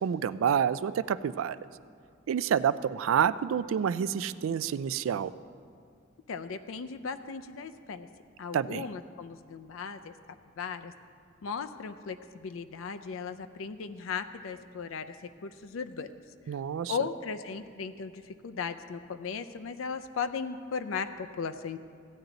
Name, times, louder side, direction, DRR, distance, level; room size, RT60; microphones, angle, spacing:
voice 1, 0.0-1.6 2.3-5.3 8.5-8.9 16.5-16.9, right 8 dB, 80° right, 16 dB, 0.3 m, -28 dB
voice 2, 6.3-8.1 8.4-10.1 10.6-10.9 11.4-16.1 16.9-21.8, left 5 dB, 80° left, 9 dB, 0.4 m, -37 dB
15.5 x 9.3 x 3.9 m, 2.2 s
head